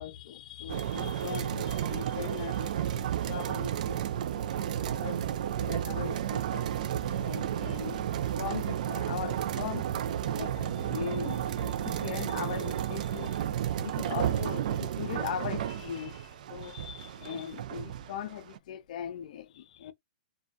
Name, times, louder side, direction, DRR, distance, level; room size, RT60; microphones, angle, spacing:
voice 1, 0.0-4.0 4.5-8.0 8.4-9.9 10.3-13.4 13.7-19.9, left 9 dB, 60° left, 0.4 m, -40 dB
sound 1, 0.7-18.6, right 10 dB, 60° right, 0.3 m, -32 dB
sound 2, 4.5-15.3, left 1 dB, 5° right, 0.7 m, -53 dB
2.3 x 2.2 x 2.6 m
hypercardioid pair, 130°, 5 cm